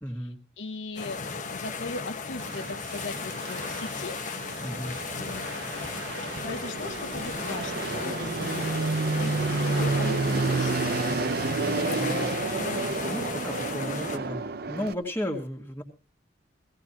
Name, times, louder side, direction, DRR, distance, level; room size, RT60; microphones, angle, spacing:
voice 1, 0.0-0.4 4.6-5.0 11.9-12.3 13.1-15.8, equal, 15° left, 2 dB, 2.2 m, -34 dB
voice 2, 0.6-4.2 5.1-5.5 6.4-10.9 11.6-13.1, left 3 dB, 80° left, 8 dB, 0.8 m, -39 dB
sound 1, 1.0-14.2, left 5 dB, 45° left, 1.2 m, -35 dB
sound 2, 2.4-10.4, right 4 dB, 80° right, 1.4 m, -43 dB
Fixed-wing aircraft airplane, 4.7-14.9, right 3 dB, 55° right, 0.7 m, -30 dB
17.5 x 17.0 x 3.0 m, 0.33 s
head